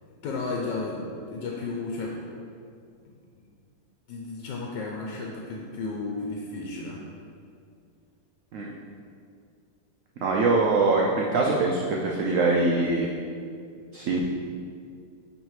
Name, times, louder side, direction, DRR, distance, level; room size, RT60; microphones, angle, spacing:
voice 1, 0.2-2.1 3.0-3.5 4.1-7.0, left 3 dB, 85° left, -2 dB, 1.3 m, -33 dB
voice 2, 10.2-13.1 13.9-14.2, right 3 dB, 75° right, -2 dB, 0.7 m, -23 dB
9.2 x 3.3 x 3.1 m, 2.3 s
omnidirectional pair, 1.9 m